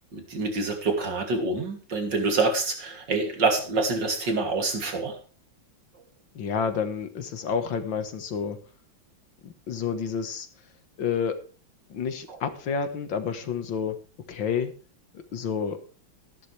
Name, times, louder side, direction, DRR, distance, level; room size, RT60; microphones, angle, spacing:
voice 1, 0.1-5.2 12.3-12.4, right 3 dB, 65° right, 4 dB, 3.4 m, -26 dB
voice 2, 6.4-8.6 9.4-10.5 11.0-11.4 11.9-14.0 14.3-14.7 15.1-15.8, left 6 dB, 75° left, 9 dB, 2.2 m, -29 dB
14.5 x 11.5 x 3.4 m, 0.38 s
omnidirectional pair, 2.1 m